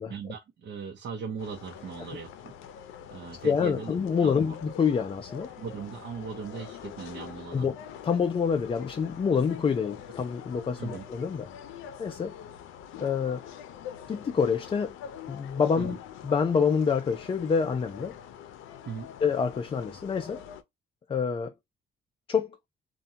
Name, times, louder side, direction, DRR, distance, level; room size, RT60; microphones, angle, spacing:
voice 1, 0.1-2.5 3.1-4.6 5.6-7.7 10.8-11.0 15.8-16.0 18.9-19.1, right 6 dB, 60° right, 0.6 m, -39 dB
sound 1, 1.4-20.6, left 9 dB, 90° left, 0.5 m, -45 dB
voice 2, 3.3-5.5 7.5-7.8 8.0-11.5 12.0-12.3 13.0-13.4 14.1-15.0 15.3-16.0 16.2-18.1 19.2-20.4 21.1-21.5 22.3-22.5, left 6 dB, 25° left, 0.4 m, -27 dB
2.6 x 2.2 x 2.7 m
cardioid pair, 90°, 20 cm